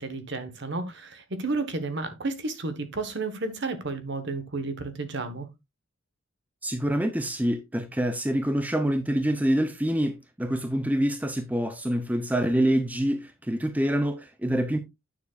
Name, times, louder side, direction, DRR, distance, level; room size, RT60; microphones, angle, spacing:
voice 1, 0.0-5.5, right 3 dB, 55° right, 1.3 m, -32 dB
voice 2, 6.6-14.8, right 1 dB, 10° right, 0.6 m, -26 dB
9.5 x 6.8 x 2.5 m
head